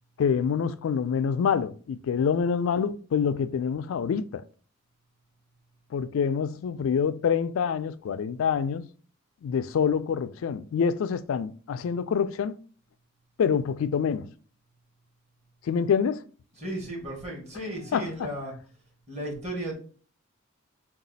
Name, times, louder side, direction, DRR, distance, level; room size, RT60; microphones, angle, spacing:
voice 1, 0.2-4.4 5.9-8.9 9.4-12.6 13.4-14.3 15.7-16.2 17.9-18.1, left 6 dB, 85° left, 0.3 m, -26 dB
voice 2, 16.5-18.5 19.1-19.8, right 1 dB, 35° right, 1.4 m, -35 dB
4.0 x 2.4 x 3.9 m
head